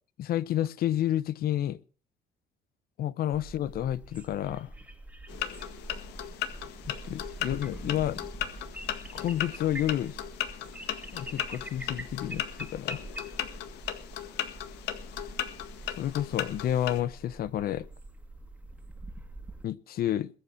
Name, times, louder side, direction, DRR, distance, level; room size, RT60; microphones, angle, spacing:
voice 1, 0.2-1.8 3.0-4.7 6.9-8.2 9.1-10.2 11.1-13.0 16.0-17.9 19.6-20.3, left 12 dB, 65° left, 0.9 m, -30 dB
sound 1, 3.3-19.6, right 1 dB, 10° right, 2.3 m, -44 dB
sound 2, 5.3-17.0, left 11 dB, 85° left, 1.8 m, -37 dB
21.0 x 8.5 x 5.9 m
cardioid pair, 110°, 17 cm